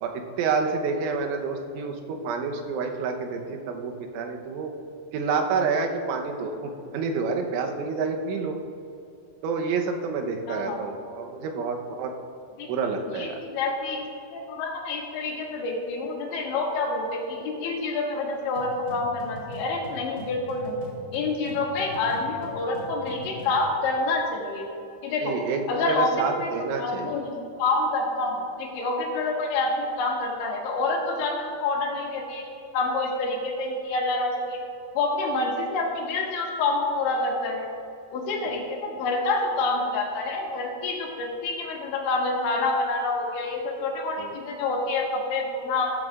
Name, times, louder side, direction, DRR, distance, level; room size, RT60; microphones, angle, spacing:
voice 1, 0.0-4.8 5.1-8.6 9.4-12.1 12.7-13.4 25.2-27.2 44.2-44.3, right 4 dB, 90° right, 3 dB, 3.4 m, -28 dB
voice 2, 10.5-10.8 12.6-12.7 13.1-14.0 14.3-20.8 21.1-24.7 25.0-25.4 25.7-34.6 35.0-37.7 38.1-45.9, left 3 dB, 80° left, 0 dB, 3.7 m, -27 dB
sound 1, 18.5-23.7, equal, 50° right, 1.0 m, -42 dB
14.0 x 12.5 x 2.4 m, 2.6 s
omnidirectional pair, 5.4 m